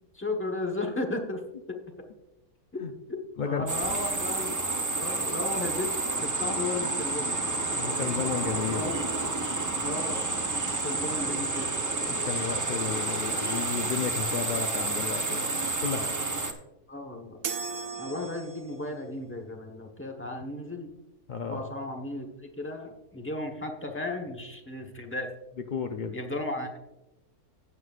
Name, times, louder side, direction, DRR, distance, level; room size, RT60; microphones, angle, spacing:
voice 1, 0.1-1.4 1.7-1.8 2.7-2.8 3.1-4.5 5.0-5.9 6.2-7.3 8.7-9.1 9.8-10.2 10.8-11.7 16.9-17.4 18.0-20.9 21.5-22.3 22.6-25.3 26.1-26.8, left 2 dB, 10° left, 3 dB, 0.9 m, -34 dB
sound 1, 3.7-16.5, right 2 dB, 30° right, 0.3 m, -30 dB
voice 2, 7.8-8.9 12.1-16.1 21.3-21.7 25.7-26.2, left 6 dB, 85° left, 6 dB, 0.4 m, -33 dB
sound 2, 8.2-14.8, equal, 50° left, 4.5 m, -52 dB
sound 3, 17.4-18.9, right 6 dB, 80° right, 1.3 m, -36 dB
15.5 x 7.8 x 2.4 m, 0.95 s
omnidirectional pair, 1.6 m